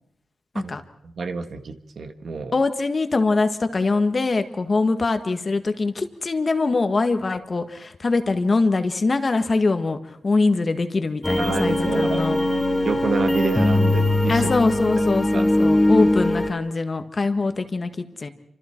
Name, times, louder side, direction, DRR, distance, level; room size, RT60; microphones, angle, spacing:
voice 1, 1.0-2.5 11.4-12.2 12.8-14.5 15.3-15.4, right 5 dB, 60° right, 7 dB, 1.8 m, -28 dB
voice 2, 2.5-10.0 10.2-12.4 14.3-18.3, left 3 dB, 35° left, 8 dB, 1.7 m, -23 dB
sound 1, 11.2-16.5, left 1 dB, 10° left, 2.3 m, -20 dB
28.5 x 26.0 x 4.6 m, 0.73 s
wide cardioid pair, 110°, 0 cm